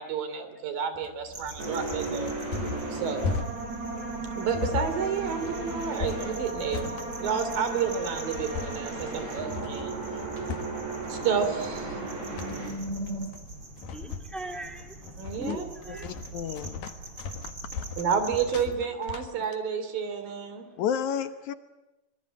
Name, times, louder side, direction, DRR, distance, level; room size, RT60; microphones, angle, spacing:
voice 1, 0.0-2.3 2.9-3.4 4.3-6.9 7.2-10.0 11.1-12.1 15.2-16.0 18.0-20.7, right 6 dB, 90° right, 9 dB, 4.8 m, -30 dB
sound 1, 1.0-19.6, left 5 dB, 85° left, 3.4 m, -38 dB
sound 2, 1.3-18.5, right 2 dB, 30° right, 5.4 m, -44 dB
sound 3, 1.6-13.3, right 3 dB, 55° right, 7.3 m, -35 dB
voice 2, 13.9-16.1, right 2 dB, ahead, 5 dB, 2.3 m, -40 dB
voice 3, 15.9-16.9 20.8-21.5, left 8 dB, 65° left, 11 dB, 2.4 m, -31 dB
25.0 x 21.5 x 9.1 m, 0.96 s
omnidirectional pair, 3.9 m